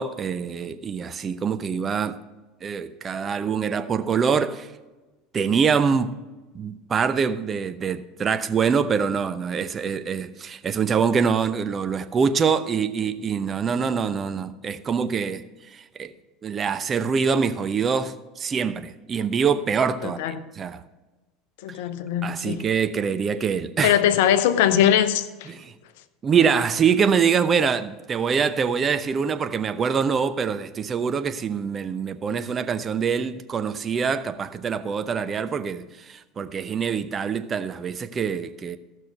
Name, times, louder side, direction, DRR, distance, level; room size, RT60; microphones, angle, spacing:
voice 1, 0.0-2.2 2.6-4.7 5.3-6.1 6.5-15.4 15.7-16.1 16.4-20.8 22.2-24.0 25.5-25.7 26.2-38.8, right 6 dB, 30° right, 0.7 m, -24 dB
voice 2, 20.0-20.4 21.6-22.7 23.8-25.5, left 10 dB, 65° left, 0.7 m, -21 dB
14.5 x 6.4 x 5.4 m
hypercardioid pair, 75°, 0 cm